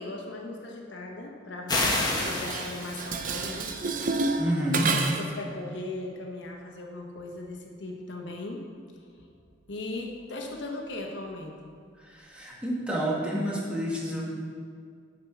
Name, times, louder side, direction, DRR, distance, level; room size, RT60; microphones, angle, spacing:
voice 1, 0.0-3.7 5.0-8.6 9.7-11.7, left 2 dB, 70° left, 1 dB, 1.0 m, -38 dB
sound 1, 1.7-3.3, left 2 dB, 20° left, 0.9 m, -28 dB
Dishes pots and pans, 2.0-5.4, right 3 dB, 45° right, 0.5 m, -30 dB
voice 2, 4.4-4.9 12.0-14.2, equal, 5° right, -4 dB, 1.3 m, -29 dB
7.1 x 5.2 x 5.8 m, 2.2 s
head